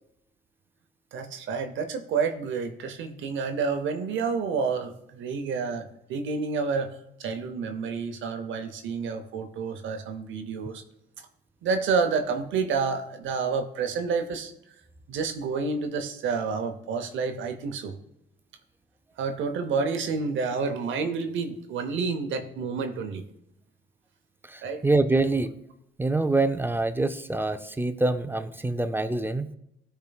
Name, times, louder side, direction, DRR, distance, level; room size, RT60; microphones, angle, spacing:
voice 1, 1.1-6.9 7.2-10.8 11.6-14.5 15.1-18.0 19.2-23.2 24.6-24.9, right 5 dB, 75° right, 7 dB, 0.7 m, -29 dB
voice 2, 24.5-25.5 26.0-29.5, right 2 dB, 10° right, 11 dB, 0.4 m, -25 dB
12.5 x 4.5 x 2.3 m, 0.79 s
cardioid pair, 90°, 20 cm